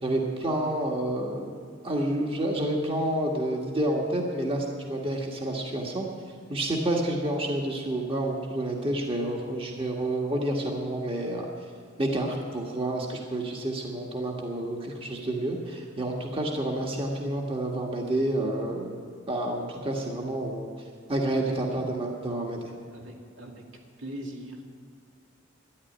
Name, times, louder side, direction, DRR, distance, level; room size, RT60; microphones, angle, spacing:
voice 1, 0.0-1.5 1.8-6.0 6.5-11.5 12.0-19.0 19.3-20.7 21.1-22.6, right 1 dB, 25° right, 0 dB, 1.5 m, -29 dB
voice 2, 22.9-23.6 24.0-24.7, right 1 dB, 80° right, 0 dB, 2.3 m, -40 dB
12.5 x 10.5 x 9.1 m, 2.1 s
head